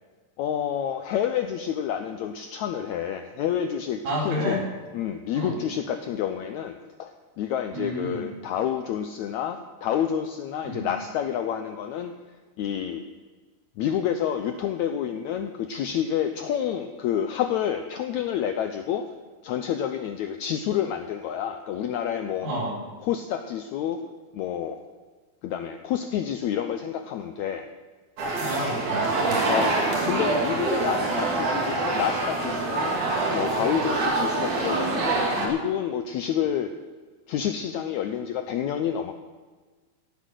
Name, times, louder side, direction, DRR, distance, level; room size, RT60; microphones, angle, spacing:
voice 1, 0.4-4.6 4.9-12.1 12.6-13.0 13.8-19.1 19.4-22.5 23.0-24.0 24.3-24.8 25.4-27.7 29.5-29.8 30.0-33.0 33.3-36.7 37.3-39.1, left 9 dB, 80° left, 7 dB, 1.7 m, -28 dB
voice 2, 4.0-4.6 5.3-5.6 7.7-8.3 10.6-10.9 22.4-22.8 28.4-29.5, equal, 80° right, -1 dB, 5.5 m, -30 dB
sound 1, 28.2-35.5, right 3 dB, 60° right, 3.8 m, -25 dB
17.0 x 8.4 x 6.2 m, 1.4 s
omnidirectional pair, 4.0 m